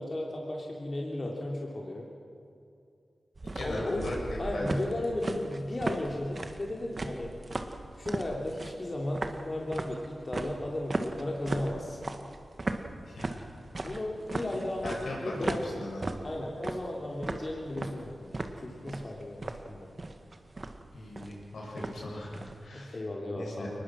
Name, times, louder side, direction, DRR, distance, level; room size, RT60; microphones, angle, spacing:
voice 1, 0.0-2.1 3.6-7.3 8.0-12.0 13.7-15.8 16.2-19.9 22.7-23.7, left 1 dB, 45° left, -2 dB, 3.0 m, -35 dB
sound 1, 3.3-22.6, right 2 dB, 50° right, 1.7 m, -37 dB
voice 2, 3.5-4.6 13.1-13.3 13.9-14.0 14.5-14.6 14.8-16.0 20.9-23.0 23.3-23.7, left 1 dB, 85° left, -3 dB, 6.6 m, -38 dB
23.0 x 20.0 x 6.2 m, 2.4 s
cardioid pair, 45°, 0 cm